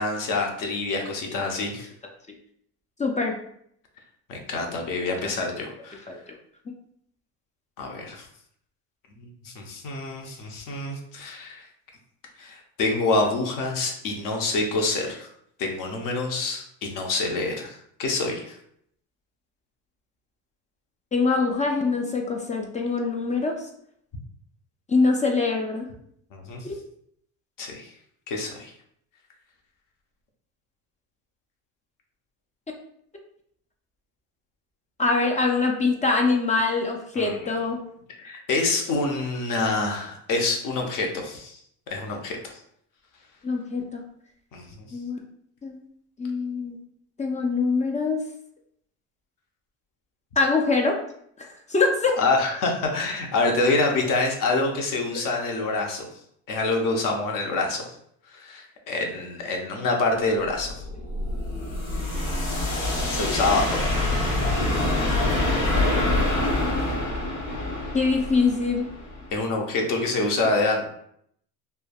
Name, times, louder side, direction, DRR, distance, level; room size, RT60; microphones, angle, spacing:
voice 1, 0.0-1.9 4.3-6.0 7.8-8.3 9.2-11.6 12.4-15.3 15.6-18.6 26.3-26.6 27.6-27.9 28.3-28.7 37.1-37.4 38.2-41.6 41.9-42.4 44.5-44.7 52.2-56.1 56.5-57.8 58.3-60.8 63.1-64.3 69.3-70.9, left 3 dB, 60° left, 2 dB, 0.8 m, -26 dB
voice 2, 3.0-3.3 5.2-5.3 6.1-6.2 21.1-23.7 24.9-25.9 26.6-26.8 35.0-37.8 43.4-44.0 44.9-45.2 45.6-45.8 46.2-46.8 47.2-48.2 50.4-51.0 51.4-52.2 67.9-68.9, left 3 dB, 20° left, 1 dB, 0.3 m, -24 dB
sound 1, 60.5-69.4, left 2 dB, 80° left, 1.2 m, -26 dB
3.2 x 2.1 x 2.3 m, 0.69 s
supercardioid pair, 90°, 38 cm